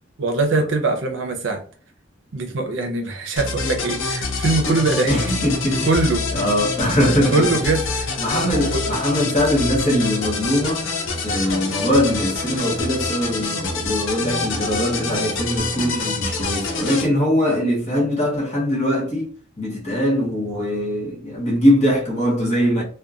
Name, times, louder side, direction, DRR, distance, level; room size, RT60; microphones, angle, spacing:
voice 1, 0.2-1.6 2.3-5.1 5.8-6.2 7.3-8.1 8.5-8.8, right 3 dB, 65° right, 0.6 m, -22 dB
sound 1, 3.4-17.1, left 3 dB, 70° left, 0.6 m, -26 dB
voice 2, 5.1-5.9 6.3-7.6 8.2-10.8 11.2-19.3 19.6-22.8, equal, 35° left, 0.9 m, -21 dB
2.9 x 2.2 x 2.4 m
head